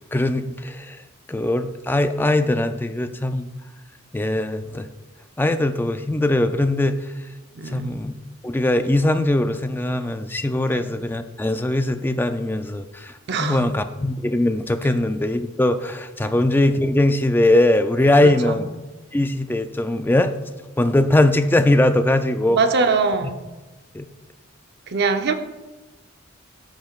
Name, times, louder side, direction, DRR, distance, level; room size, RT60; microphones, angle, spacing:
voice 1, 0.1-1.0 1.3-3.5 4.1-4.9 5.4-7.1 7.7-8.1 8.4-18.7 19.1-20.3 20.8-22.6 23.9-24.1, left 1 dB, 10° left, 9 dB, 0.3 m, -20 dB
voice 2, 7.6-8.0 10.7-10.8 13.3-13.7 16.2-16.4 18.2-18.6 22.5-23.4 24.9-25.3, right 4 dB, 50° right, 7 dB, 0.6 m, -23 dB
13.5 x 5.8 x 2.4 m, 1.2 s
head